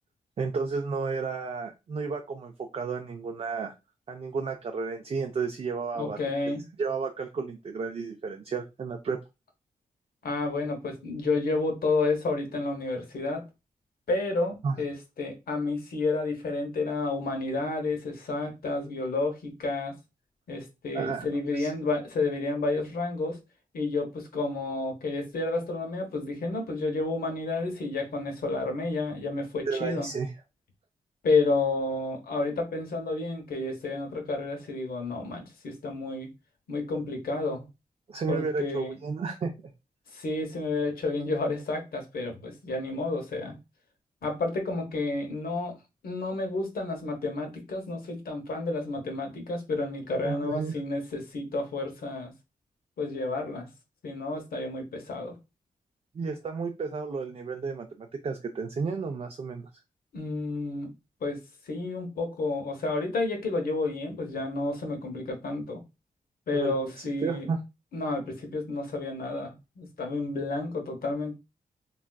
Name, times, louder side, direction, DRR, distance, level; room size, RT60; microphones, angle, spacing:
voice 1, 0.4-3.7 4.1-6.2 6.8-9.2 14.6-14.8 20.9-21.3 21.5-21.7 29.6-30.3 38.1-39.7 50.2-50.8 56.1-59.7 66.5-67.6, right 4 dB, 40° right, 0.4 m, -32 dB
voice 2, 5.9-6.6 10.2-13.4 14.1-19.9 20.5-23.4 23.7-30.1 31.2-36.3 36.7-37.6 38.3-39.0 40.1-43.6 44.2-45.7 46.0-52.3 53.0-53.7 54.0-55.3 60.1-60.9 61.2-61.4 61.6-65.8 66.5-67.5 67.9-71.4, left 3 dB, 80° left, 0.9 m, -30 dB
3.5 x 2.3 x 2.2 m
wide cardioid pair, 135°, 15 cm